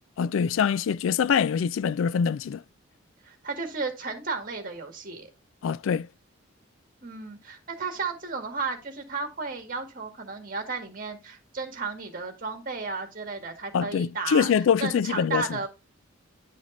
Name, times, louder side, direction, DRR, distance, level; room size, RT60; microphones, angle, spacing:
voice 1, 0.2-2.6 5.6-6.1 13.7-15.4, left 7 dB, 80° left, 0.3 m, -24 dB
voice 2, 3.2-5.3 7.0-14.5 14.8-15.7, right 4 dB, 45° right, 1.9 m, -33 dB
10.5 x 5.1 x 2.6 m
head